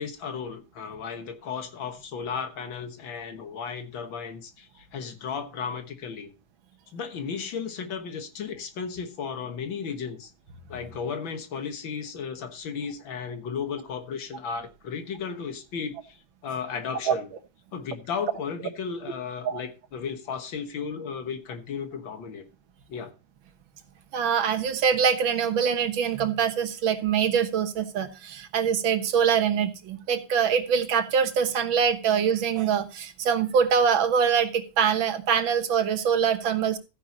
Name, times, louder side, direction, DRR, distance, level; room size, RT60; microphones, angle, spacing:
voice 1, 0.0-6.3 6.9-10.3 10.7-16.2 16.4-17.3 17.7-22.4 22.9-23.1, left 6 dB, 80° left, 2.2 m, -34 dB
voice 2, 24.1-36.8, right 7 dB, 90° right, 2.0 m, -24 dB
14.0 x 10.0 x 2.9 m
omnidirectional pair, 2.1 m